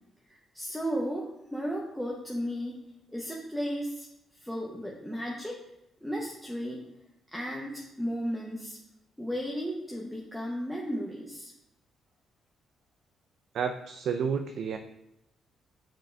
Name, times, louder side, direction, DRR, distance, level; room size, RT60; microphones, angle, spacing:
voice 1, 0.3-2.8 3.1-4.1 4.3-5.6 6.0-6.8 7.3-8.8 9.2-11.5, equal, ahead, -2 dB, 0.8 m, -34 dB
voice 2, 13.5-14.8, right 6 dB, 65° right, 5 dB, 0.4 m, -30 dB
7.4 x 3.8 x 3.4 m, 0.87 s
cardioid pair, 100°, 0 cm